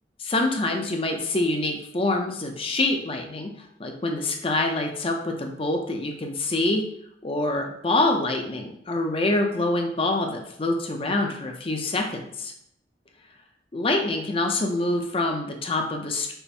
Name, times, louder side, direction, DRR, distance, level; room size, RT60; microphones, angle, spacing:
voice 1, 0.2-6.8 7.2-12.5 13.7-16.3, left 2 dB, 30° left, 3 dB, 0.5 m, -26 dB
5.5 x 2.0 x 4.2 m, 0.72 s
head